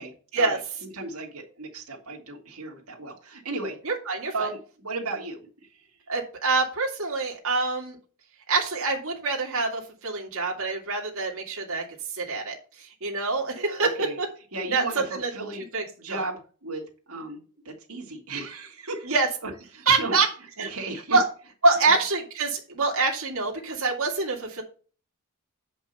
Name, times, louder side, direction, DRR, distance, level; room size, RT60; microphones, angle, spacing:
voice 1, 0.0-3.8 4.3-6.0 13.8-14.2 14.5-15.6 16.0-19.1 19.4-20.1 20.7-21.2 21.8-21.9, right 3 dB, 90° right, -1 dB, 2.4 m, -35 dB
voice 2, 3.9-4.5 6.1-8.0 8.5-11.8 12.1-12.6 13.0-14.3 14.7-14.8 15.2-15.3 15.7-15.8 16.1-16.2 19.1-19.3 19.9-20.3 20.6-20.7 21.1-21.2 21.6-24.6, right 3 dB, 65° right, -1 dB, 2.3 m, -25 dB
8.3 x 5.3 x 5.5 m, 0.38 s
head